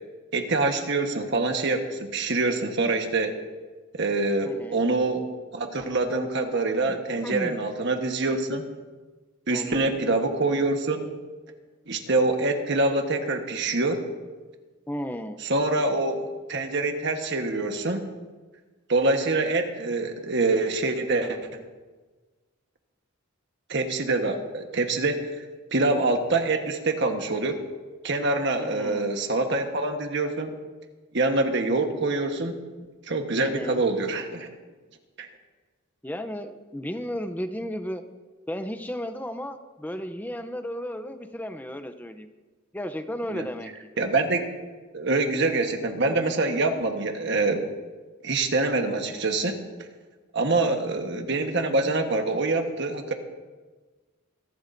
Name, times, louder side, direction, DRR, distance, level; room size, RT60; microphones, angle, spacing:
voice 1, 0.3-3.4 3.9-8.7 9.5-11.1 11.9-14.0 15.4-16.2 16.5-18.1 18.9-21.6 23.7-25.4 25.7-27.6 28.0-30.5 31.1-32.6 33.1-34.5 35.2-35.3 43.3-43.5 44.0-44.4 44.9-47.6 48.2-49.6 50.3-53.1, right 2 dB, 55° right, 5 dB, 1.3 m, -25 dB
voice 2, 4.4-4.8 7.2-7.6 9.5-10.0 14.9-15.4 28.6-29.1 33.4-33.8 36.0-38.0 38.5-42.3 42.7-43.7 50.5-50.9, equal, 10° left, 8 dB, 0.6 m, -34 dB
25.5 x 12.5 x 2.7 m, 1.3 s
head